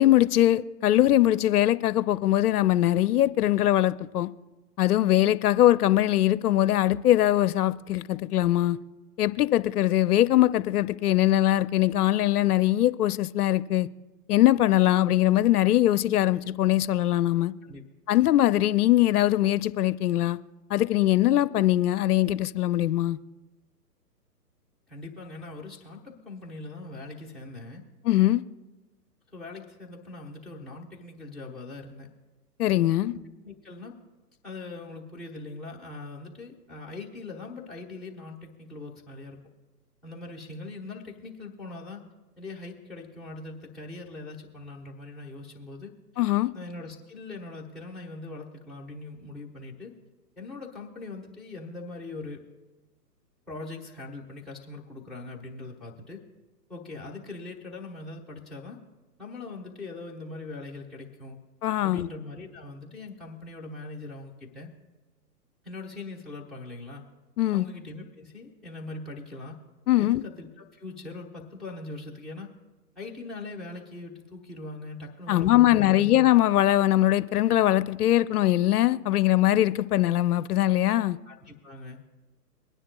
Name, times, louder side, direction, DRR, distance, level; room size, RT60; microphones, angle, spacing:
voice 1, 0.0-4.3 4.8-8.8 9.2-13.9 14.3-17.5 18.1-20.4 20.7-23.2 28.0-28.4 32.6-33.1 46.2-46.5 61.6-62.1 67.4-67.7 69.9-70.2 75.3-81.2, left 14 dB, 65° left, 0.6 m, -22 dB
voice 2, 24.9-27.8 29.3-32.1 33.4-33.9 34.4-39.4 40.0-42.0 42.4-45.9 46.5-49.9 50.4-52.4 53.5-56.2 56.7-58.8 59.2-61.4 61.8-64.7 65.6-67.0 67.5-69.6 70.0-72.5 73.0-76.1 81.3-82.0, left 3 dB, ahead, 1.1 m, -41 dB
24.0 x 10.0 x 2.3 m
hypercardioid pair, 140°, 49 cm